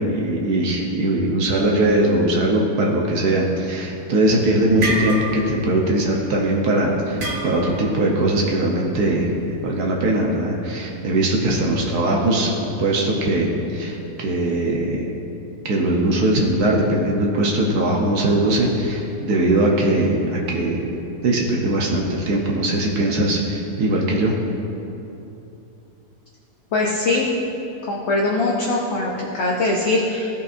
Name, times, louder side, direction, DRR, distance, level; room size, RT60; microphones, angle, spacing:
voice 1, 0.0-9.3 9.6-15.1 15.6-20.9 21.2-24.3, right 1 dB, 75° right, -1 dB, 1.4 m, -20 dB
sound 1, 4.2-6.2 7.2-7.9, right 2 dB, 50° right, 1.2 m, -26 dB
voice 2, 26.7-27.3 27.8-30.3, left 2 dB, 55° left, -3 dB, 0.9 m, -21 dB
14.5 x 5.4 x 2.5 m, 2.8 s
omnidirectional pair, 1.7 m